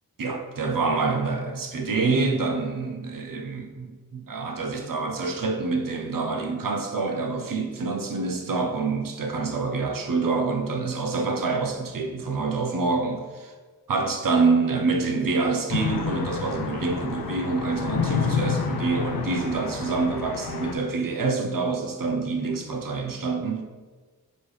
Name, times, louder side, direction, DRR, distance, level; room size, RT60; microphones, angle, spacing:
voice 1, 0.2-13.5 13.9-23.6, right 4 dB, 60° right, 4 dB, 0.7 m, -26 dB
sound 1, 15.7-20.8, left 5 dB, 70° left, 0.6 m, -29 dB
4.0 x 3.2 x 3.3 m, 1.3 s
cardioid pair, 50°, 38 cm